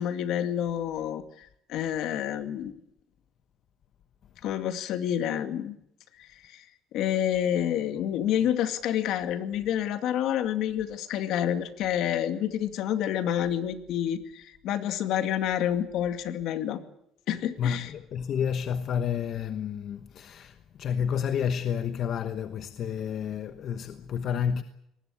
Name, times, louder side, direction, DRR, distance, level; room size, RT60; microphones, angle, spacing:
voice 1, 0.0-2.7 4.4-5.8 6.2-6.6 6.9-16.8 17.3-17.9, left 10 dB, 65° left, 2.2 m, -28 dB
voice 2, 17.6-24.6, left 8 dB, 50° left, 1.1 m, -30 dB
23.0 x 20.0 x 8.6 m
cardioid pair, 125°, 0 cm